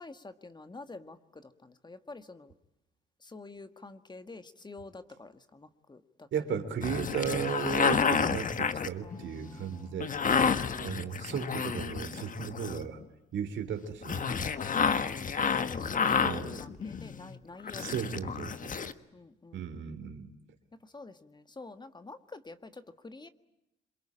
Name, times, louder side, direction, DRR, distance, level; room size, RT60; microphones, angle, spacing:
voice 1, 0.0-2.5 3.2-6.3 9.0-10.8 14.5-18.8 19.1-19.9 20.8-23.3, left 3 dB, 20° left, 10 dB, 1.6 m, -49 dB
voice 2, 6.3-10.4 10.8-13.0 13.3-14.3 16.2-16.6 17.8-18.7 19.5-20.3, right 7 dB, 70° right, 8 dB, 3.5 m, -35 dB
sound 1, 6.8-13.0 14.0-17.4 17.6-18.9, left 6 dB, 40° left, 1.5 m, -30 dB
27.0 x 23.0 x 8.8 m, 0.88 s
cardioid pair, 90°, 20 cm